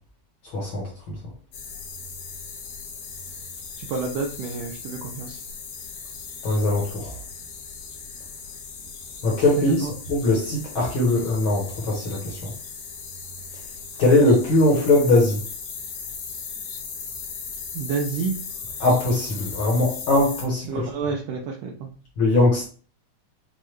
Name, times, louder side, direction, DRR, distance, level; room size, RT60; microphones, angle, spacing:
voice 1, 0.5-1.1 6.4-7.1 9.2-12.5 14.0-15.4 18.8-20.7 22.2-22.7, left 2 dB, 60° left, -2 dB, 1.4 m, -21 dB
sound 1, 1.5-20.4, left 5 dB, 80° left, 2.4 m, -37 dB
voice 2, 3.8-5.4 9.6-9.9 17.7-18.4 20.7-21.9, right 5 dB, 80° right, 2 dB, 1.4 m, -29 dB
6.1 x 2.2 x 3.1 m, 0.41 s
omnidirectional pair, 3.3 m